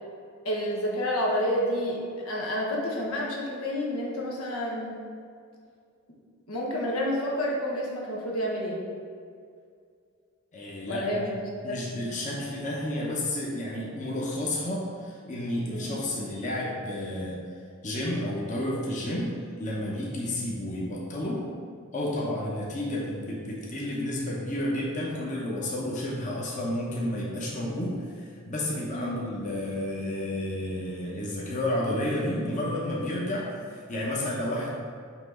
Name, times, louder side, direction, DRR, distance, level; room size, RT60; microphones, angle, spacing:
voice 1, 0.4-5.0 6.5-8.8 10.9-11.3 11.7-12.1 15.7-16.0 28.9-29.2, equal, 85° left, -3 dB, 1.2 m, -29 dB
voice 2, 10.5-11.3 11.6-17.4 17.8-19.3 19.6-21.4 21.9-34.8, left 1 dB, 35° left, -5 dB, 0.9 m, -31 dB
5.8 x 3.1 x 5.6 m, 2.3 s
head